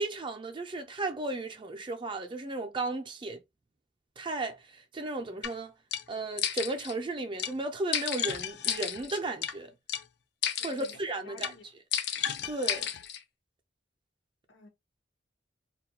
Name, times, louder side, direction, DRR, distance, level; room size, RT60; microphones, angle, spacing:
voice 1, 0.0-3.4 4.2-5.7 6.1-9.7 10.6-11.5 12.4-12.9, right 2 dB, 25° right, 0.4 m, -34 dB
sound 1, 5.4-5.5 5.9-6.0 6.4-6.9 7.4-7.5 7.9-9.5 9.9-10.0 10.4-11.0 11.4-11.5 11.9-13.2, left 9 dB, 60° left, 0.4 m, -32 dB
voice 2, 10.6-11.7 14.5-14.7, left 3 dB, 80° left, 0.8 m, -53 dB
2.3 x 2.1 x 2.7 m
head